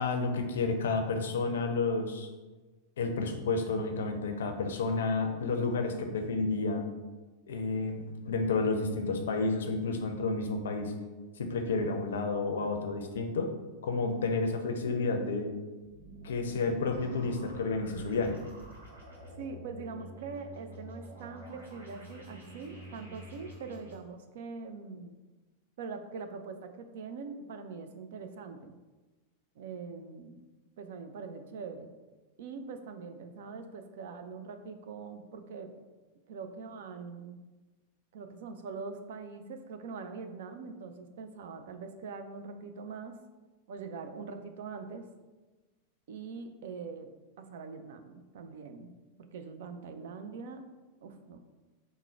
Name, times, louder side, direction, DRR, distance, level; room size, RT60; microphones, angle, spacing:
voice 1, 0.0-2.3 3.0-6.8 7.5-10.9 11.4-13.5 13.8-15.5 16.2-18.4, left 3 dB, 65° left, 5 dB, 0.5 m, -31 dB
sound 1, 15.8-24.0, right 1 dB, 80° right, 1.0 m, -49 dB
voice 2, 19.4-25.1 25.8-28.7 29.6-30.4 30.8-31.9 32.4-35.7 36.3-37.4 38.1-43.2 43.7-45.1 46.1-47.1 47.4-50.6 51.0-51.4, right 5 dB, 55° right, 7 dB, 0.3 m, -43 dB
3.6 x 2.1 x 4.3 m, 1.2 s
figure-of-eight pair, 90°, 0 cm